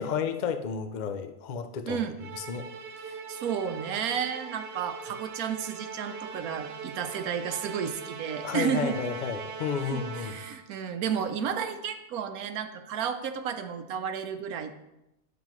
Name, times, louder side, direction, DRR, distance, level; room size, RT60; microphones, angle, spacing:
voice 1, 0.0-2.0 2.3-2.7 8.4-10.4, left 7 dB, 55° left, 8 dB, 0.5 m, -32 dB
Musical instrument, 2.2-10.7, right 5 dB, 65° right, 1.1 m, -41 dB
voice 2, 3.3-9.0 9.9-14.7, right 7 dB, 90° right, 8 dB, 1.2 m, -32 dB
9.4 x 7.1 x 3.1 m, 0.91 s
omnidirectional pair, 1.5 m